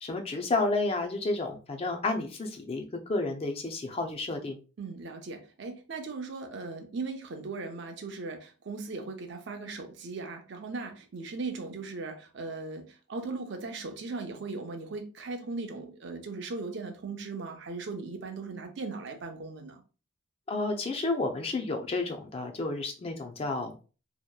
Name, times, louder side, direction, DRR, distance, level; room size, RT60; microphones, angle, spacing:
voice 1, 0.0-4.6 20.5-23.7, left 2 dB, 30° left, 0.3 m, -31 dB
voice 2, 4.8-19.8, right 3 dB, 55° right, 0.5 m, -38 dB
2.7 x 2.1 x 2.2 m
head